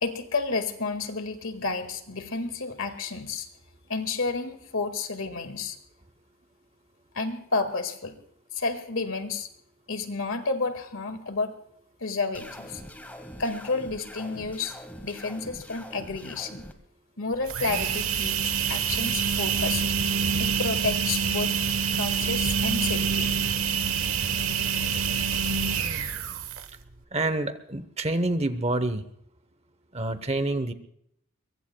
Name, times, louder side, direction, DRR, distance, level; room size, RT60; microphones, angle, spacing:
voice 1, 0.0-3.5 3.9-5.8 7.1-8.2 8.5-9.5 9.9-11.5 12.0-12.8 13.4-16.6 17.2-19.8 20.4-21.5 21.9-23.3, left 3 dB, 65° left, 9 dB, 1.9 m, -31 dB
sound 1, 12.3-16.7, equal, 10° left, 1.3 m, -43 dB
sound 2, 17.3-26.8, right 6 dB, 70° right, 1.2 m, -26 dB
voice 2, 27.1-29.0 29.9-30.7, right 2 dB, 30° right, 13 dB, 0.9 m, -27 dB
23.5 x 23.5 x 2.3 m, 0.71 s
head